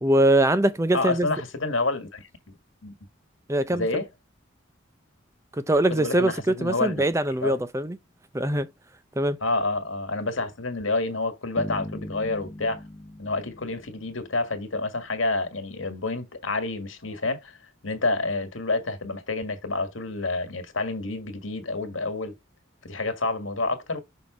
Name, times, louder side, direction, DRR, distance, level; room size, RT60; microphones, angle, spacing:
voice 1, 0.0-1.3 3.5-4.0 5.6-8.0 8.3-8.7 9.2-9.4, right 1 dB, 15° right, 0.5 m, -22 dB
voice 2, 0.9-2.6 2.8-2.9 3.7-4.1 5.9-7.0 7.4-7.6 9.4-12.8 13.2-17.6 17.8-22.3 22.8-24.0, left 3 dB, 85° left, 1.7 m, -28 dB
sound 1, 11.6-14.6, left 1 dB, 25° left, 0.9 m, -39 dB
6.0 x 3.5 x 4.9 m
head